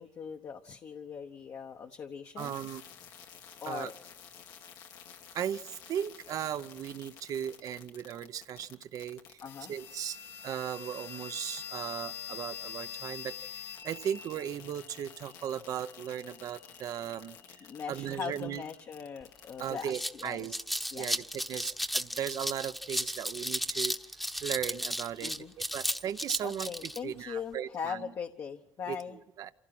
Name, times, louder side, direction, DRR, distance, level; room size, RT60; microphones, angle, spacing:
voice 1, 0.0-2.8 3.6-3.9 9.4-9.7 17.6-20.6 20.9-21.1 25.2-25.5 26.4-29.2, left 7 dB, 55° left, 4 dB, 1.1 m, -40 dB
sound 1, 2.4-20.0, left 9 dB, 80° left, 1.7 m, -47 dB
voice 2, 2.4-2.8 3.7-3.9 5.3-9.4 9.7-18.6 19.6-20.6 20.9-28.1 28.9-29.5, right 9 dB, 65° right, 12 dB, 0.8 m, -37 dB
sound 2, 19.2-19.3 19.6-27.0, equal, ahead, 1.0 m, -34 dB
26.5 x 16.5 x 6.1 m, 0.81 s
cardioid pair, 100°, 6 cm